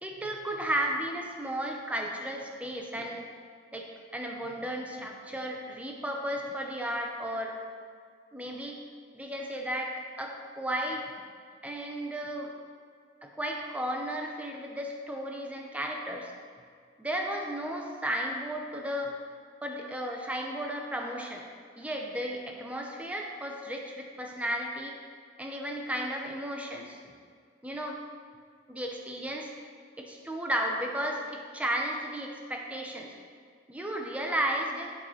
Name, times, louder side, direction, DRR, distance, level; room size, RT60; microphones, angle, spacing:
voice 1, 0.0-3.3 3.7-7.6 8.3-8.8 9.1-11.1 11.6-12.5 13.2-16.3 17.0-19.2 19.6-21.4 21.8-25.0 25.4-27.0 27.6-28.0 28.7-29.5 30.0-33.1 33.7-34.9, equal, 5° right, 1 dB, 0.6 m, -34 dB
11.0 x 4.1 x 3.1 m, 2.1 s
head